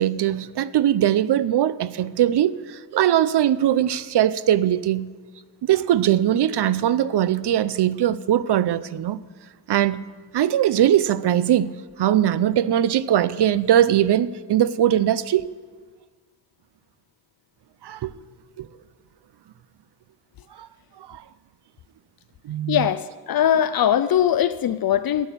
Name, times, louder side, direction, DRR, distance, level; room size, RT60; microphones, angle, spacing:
voice 1, 0.0-5.1 5.6-9.2 9.7-10.0 10.3-15.5 17.8-18.1 18.6-18.7 20.6-20.7 21.1-21.2 22.4-22.9, right 11 dB, 80° right, 0.7 m, -21 dB
voice 2, 22.7-25.3, left 10 dB, 65° left, 0.6 m, -21 dB
13.0 x 11.0 x 6.9 m
wide cardioid pair, 100°, 40 cm